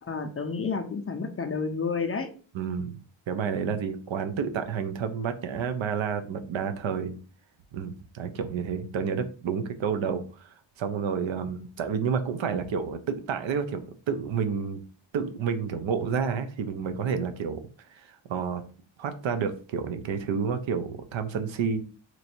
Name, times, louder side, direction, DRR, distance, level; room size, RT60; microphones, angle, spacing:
voice 1, 0.0-2.3, left 5 dB, 30° left, 7 dB, 0.4 m, -30 dB
voice 2, 2.5-3.0 3.3-7.2 7.7-10.5 10.8-14.8 15.1-17.6 17.9-18.6 19.0-21.8, right 6 dB, 70° right, 8 dB, 0.7 m, -30 dB
3.0 x 2.6 x 4.2 m, 0.38 s
wide cardioid pair, 130°, 48 cm